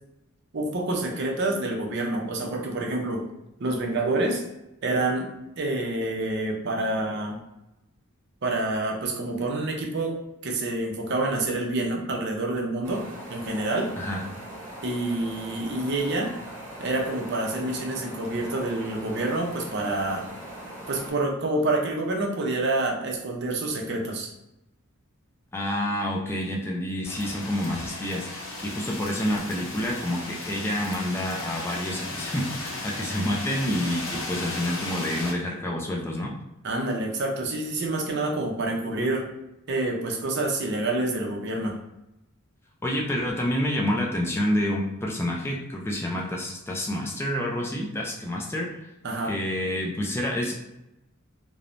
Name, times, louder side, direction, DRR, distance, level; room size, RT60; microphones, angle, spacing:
voice 1, 0.5-3.3 3.6-4.5 4.8-5.3 5.6-7.4 8.4-13.9 14.8-16.3 16.8-20.3 20.9-24.3 36.6-39.3 39.7-41.8 49.0-49.3, right 2 dB, 50° right, 1 dB, 0.5 m, -27 dB
sound 1, 12.8-21.1, right 1 dB, 35° right, 1.0 m, -41 dB
voice 2, 25.5-36.3 42.8-48.9 49.3-50.6, left 1 dB, 10° left, -1 dB, 0.3 m, -28 dB
sound 2, 27.0-35.3, left 2 dB, 65° left, 0.6 m, -35 dB
3.0 x 2.0 x 2.5 m, 0.91 s
head